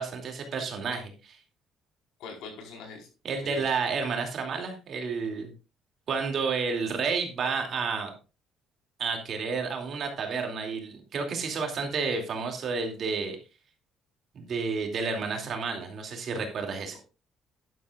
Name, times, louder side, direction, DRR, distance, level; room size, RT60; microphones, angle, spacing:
voice 1, 0.0-1.4 3.2-5.5 6.1-8.1 9.0-13.4 14.3-17.0, right 5 dB, 40° right, 3 dB, 2.6 m, -31 dB
voice 2, 2.2-3.1 3.4-3.6, left 4 dB, 85° left, 1 dB, 4.3 m, -42 dB
11.5 x 11.0 x 2.4 m, 0.32 s
cardioid pair, 165°, 0 cm